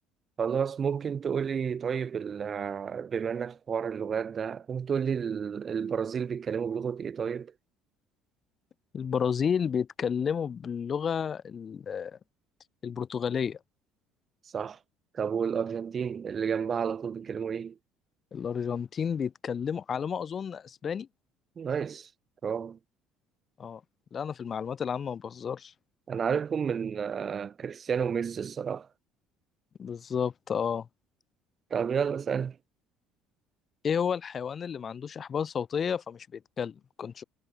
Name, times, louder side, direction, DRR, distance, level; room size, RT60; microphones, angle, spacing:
voice 1, 0.4-7.5 14.5-14.8 15.1-17.7 21.6-22.1 22.4-22.8 26.1-28.9 31.7-32.5, right 7 dB, 35° right, 3.0 m, -31 dB
voice 2, 8.9-12.2 12.8-13.6 18.3-21.1 23.6-23.8 24.1-25.7 29.8-30.9 33.8-37.2, left 7 dB, 35° left, 2.1 m, -31 dB
cardioid pair, 120°, 0 cm